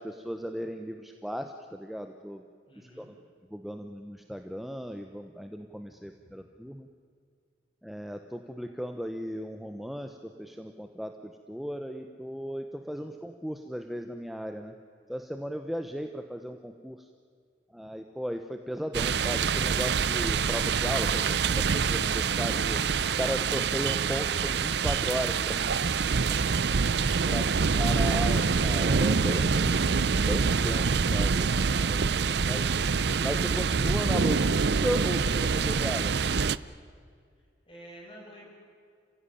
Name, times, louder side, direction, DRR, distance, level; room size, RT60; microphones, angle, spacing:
voice 1, 0.0-2.4 2.8-3.1 3.5-6.9 7.8-14.7 15.1-17.1 17.7-22.8 23.2-25.7 27.3-27.4 27.8-31.5 31.8-32.6 33.2-36.1, equal, ahead, 6 dB, 0.9 m, -36 dB
voice 2, 2.7-3.1 6.0-6.3 12.9-13.1 37.7-38.5, right 1 dB, 30° left, -1 dB, 6.7 m, -51 dB
sound 1, 18.9-36.6, right 5 dB, 65° right, 0.6 m, -26 dB
29.5 x 16.0 x 10.0 m, 2.1 s
head